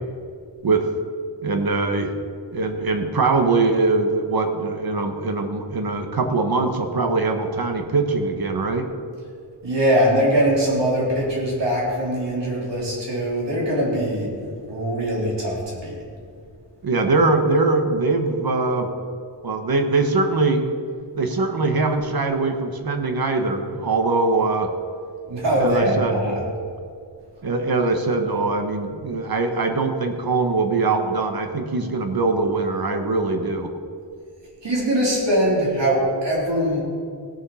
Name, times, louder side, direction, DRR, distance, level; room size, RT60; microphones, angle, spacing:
voice 1, 1.4-2.1 2.5-8.9 16.8-18.9 19.4-20.6 21.2-24.7 25.6-26.5 27.4-33.7, right 3 dB, 55° right, 5 dB, 1.3 m, -22 dB
voice 2, 9.6-14.3 14.7-16.0 25.3-26.4 34.6-36.8, equal, 75° right, -4 dB, 3.9 m, -22 dB
17.5 x 7.2 x 5.6 m, 2.3 s
wide cardioid pair, 125°, 43 cm